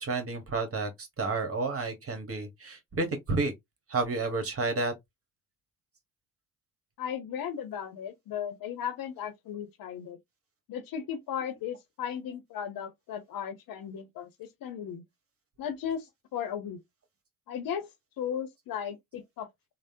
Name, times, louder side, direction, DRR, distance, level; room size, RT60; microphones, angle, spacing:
voice 1, 0.0-3.5 3.9-4.9, right 3 dB, 35° right, 1.3 m, -31 dB
voice 2, 7.0-10.2 10.7-15.0 15.6-16.1 16.3-16.8 17.5-17.9 18.2-19.5, left 8 dB, 60° left, 0.7 m, -36 dB
3.3 x 2.1 x 2.7 m
hypercardioid pair, 50°, 39 cm